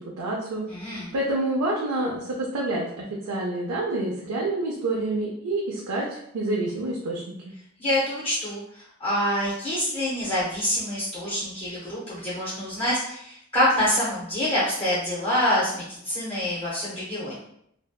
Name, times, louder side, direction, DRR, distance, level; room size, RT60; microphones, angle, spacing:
voice 1, 0.2-0.7 1.1-7.5, right 2 dB, 85° right, -3 dB, 0.4 m, -28 dB
voice 2, 0.7-1.1 7.8-17.4, left 1 dB, 25° left, -9 dB, 0.6 m, -26 dB
2.6 x 2.1 x 2.2 m, 0.72 s
head